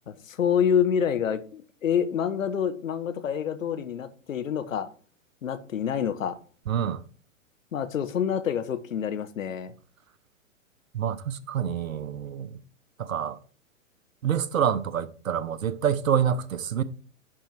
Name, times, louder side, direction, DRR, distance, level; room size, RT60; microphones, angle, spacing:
voice 1, 0.1-4.9 5.4-6.4 7.7-9.7, left 8 dB, 75° left, 1.1 m, -27 dB
voice 2, 6.7-7.0 10.9-12.6 13.0-13.4 14.2-16.8, right 8 dB, 80° right, 0.8 m, -27 dB
11.0 x 4.5 x 4.6 m
hypercardioid pair, 115°, 40 cm